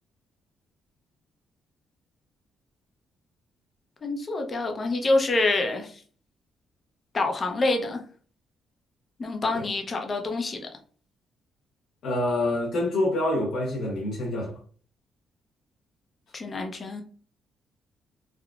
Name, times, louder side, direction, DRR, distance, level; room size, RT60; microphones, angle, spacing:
voice 1, 4.0-6.0 7.1-8.0 9.2-10.7 16.3-17.0, left 2 dB, 35° left, 0.7 m, -26 dB
voice 2, 12.0-14.5, left 1 dB, 70° left, 0.8 m, -26 dB
3.6 x 2.2 x 2.4 m
cardioid pair, 90°, 0 cm